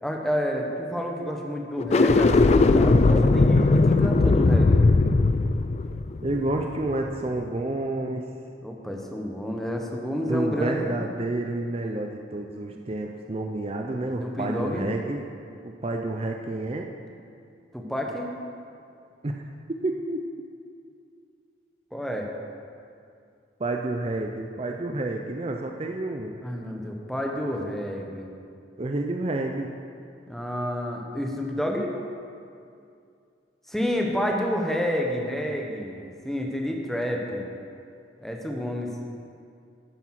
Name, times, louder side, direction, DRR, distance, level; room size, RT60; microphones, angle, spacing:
voice 1, 0.0-4.8 8.6-11.0 12.7-12.8 14.1-14.9 17.7-18.3 21.9-22.3 26.4-28.3 30.3-32.0 33.7-37.5 38.2-38.9, equal, ahead, 0 dB, 1.0 m, -29 dB
sound 1, 1.8-7.1, left 3 dB, 35° left, 0.3 m, -19 dB
voice 2, 6.2-8.3 10.2-15.3 15.6-16.9 19.2-19.4 19.8-20.4 23.6-26.4 28.8-29.7, right 2 dB, 35° right, 2 dB, 0.5 m, -29 dB
9.7 x 9.4 x 5.9 m, 2.4 s
head